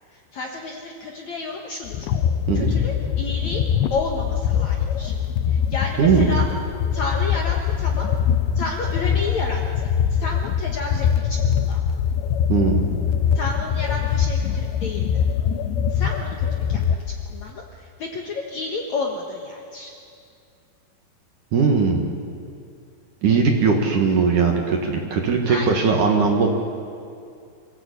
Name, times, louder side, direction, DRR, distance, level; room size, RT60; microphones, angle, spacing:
voice 1, 0.3-2.0 2.5-3.7 3.9-5.1 5.5-6.4 6.9-8.1 8.6-9.6 10.2-11.8 13.4-15.2 15.9-17.0 17.3-17.6 18.0-19.9 25.5-25.8, left 3 dB, 60° left, 0 dB, 2.0 m, -31 dB
sound 1, 1.9-17.5, left 8 dB, 85° left, 3.0 m, -23 dB
voice 2, 6.0-6.3 12.5-13.0 21.5-22.1 23.2-26.5, right 5 dB, 55° right, 2 dB, 2.7 m, -19 dB
26.0 x 15.5 x 8.4 m, 2.4 s
omnidirectional pair, 5.0 m